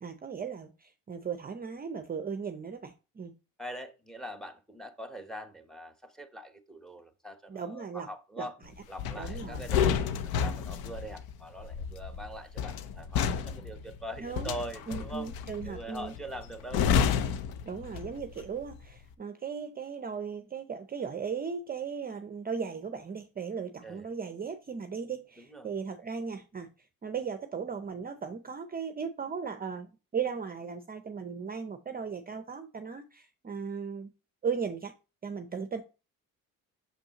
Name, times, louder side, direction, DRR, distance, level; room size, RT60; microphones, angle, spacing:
voice 1, 0.0-3.3 7.5-8.1 8.4-8.5 9.2-9.7 9.9-10.1 14.2-14.5 14.9-16.1 17.6-26.7 27.0-34.1 34.4-34.9 35.2-35.8, right 6 dB, 25° right, 0.6 m, -37 dB
voice 2, 3.6-8.5 8.9-10.0 10.4-15.3 15.6-16.8 23.8-24.1 25.4-25.7, right 1 dB, ahead, 0.9 m, -43 dB
sound 1, 9.0-18.3 18.6-18.9, left 7 dB, 80° left, 0.7 m, -31 dB
6.4 x 5.3 x 2.9 m
cardioid pair, 90°, 36 cm